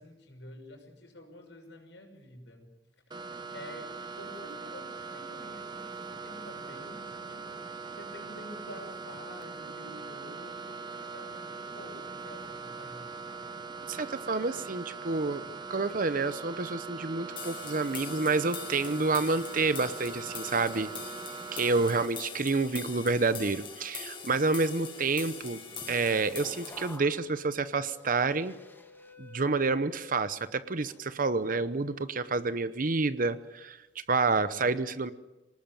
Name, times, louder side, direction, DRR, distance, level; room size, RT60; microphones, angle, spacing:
voice 1, 0.0-2.7 3.5-7.6 8.0-13.1, left 1 dB, 90° left, 2 dB, 6.3 m, -49 dB
sound 1, 3.1-22.1, right 4 dB, 25° right, 1.3 m, -41 dB
voice 2, 13.9-15.4 15.7-20.9 21.5-25.6 25.9-28.5 29.2-33.8 34.1-35.1, right 3 dB, 50° right, 13 dB, 0.8 m, -29 dB
sound 2, 17.4-27.0, left 5 dB, 30° left, 5.6 m, -43 dB
sound 3, 25.4-30.4 30.9-31.3, left 2 dB, 10° left, 2.0 m, -51 dB
25.5 x 19.0 x 9.1 m, 1.1 s
head